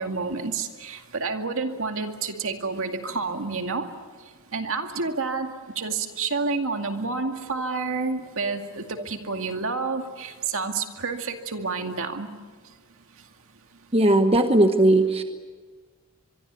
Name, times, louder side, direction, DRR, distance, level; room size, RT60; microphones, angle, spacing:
voice 1, 0.0-3.9 4.5-12.3, right 4 dB, 65° right, 5 dB, 2.3 m, -29 dB
voice 2, 13.9-15.2, right 1 dB, 25° right, 6 dB, 1.2 m, -18 dB
24.5 x 23.0 x 8.3 m, 1.5 s
head